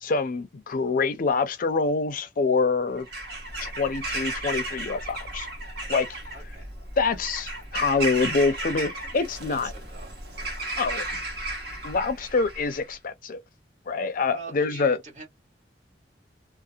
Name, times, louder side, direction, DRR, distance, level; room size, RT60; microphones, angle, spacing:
voice 1, 0.0-3.1 3.6-5.5 5.9-6.1 7.0-9.7 10.8-11.0 11.8-13.4 13.9-15.0, left 4 dB, 50° left, 0.5 m, -25 dB
Bird vocalization bird call bird song / Crow, 3.0-12.9, right 2 dB, 60° right, 1.0 m, -34 dB
voice 2, 6.3-6.8 8.8-10.2 14.3-15.3, right 4 dB, 45° right, 1.2 m, -44 dB
2.7 x 2.0 x 2.3 m
head